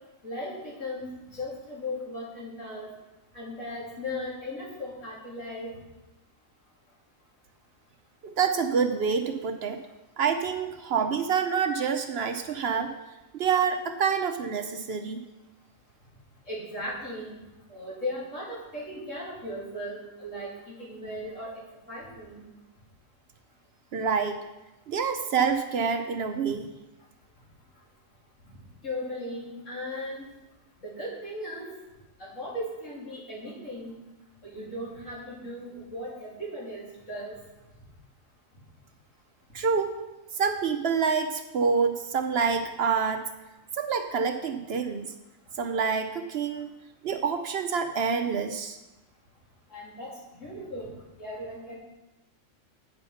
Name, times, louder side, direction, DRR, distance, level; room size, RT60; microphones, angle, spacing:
voice 1, 0.2-1.1 1.3-2.9 3.3-5.7 16.5-17.3 17.7-21.6 21.9-22.5 28.8-30.2 30.8-31.7 32.2-33.9 34.4-37.4 49.7-51.8, left 1 dB, 80° left, -7 dB, 3.4 m, -37 dB
voice 2, 8.2-9.8 10.2-12.9 13.3-15.2 23.9-24.4 24.9-26.7 39.5-40.0 40.3-43.2 43.7-45.1 45.6-46.7 47.0-48.8, right 6 dB, 60° right, 7 dB, 0.8 m, -27 dB
8.9 x 5.5 x 5.6 m, 1.0 s
omnidirectional pair, 1.3 m